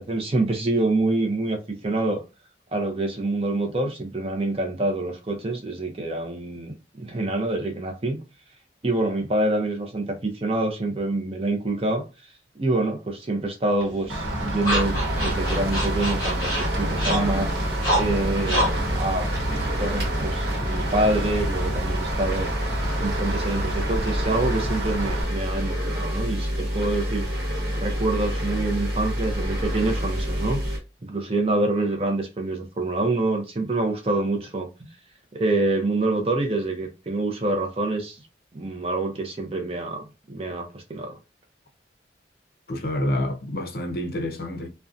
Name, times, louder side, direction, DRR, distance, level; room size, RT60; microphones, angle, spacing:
voice 1, 0.0-1.6 1.8-2.2 2.7-8.2 8.8-12.0 12.6-17.5 17.9-22.5 23.0-27.3 27.7-30.6 31.0-34.7 35.3-38.2 38.5-41.2, right 2 dB, 30° right, 0.5 m, -26 dB
sound 1, 13.8-20.3, equal, 20° left, 0.9 m, -29 dB
Rain, 14.1-25.2, right 1 dB, 85° right, 1.0 m, -30 dB
sound 2, 14.7-30.8, equal, 60° right, 1.0 m, -28 dB
voice 2, 42.7-44.7, left 1 dB, 55° left, 0.5 m, -28 dB
2.5 x 2.1 x 2.4 m
head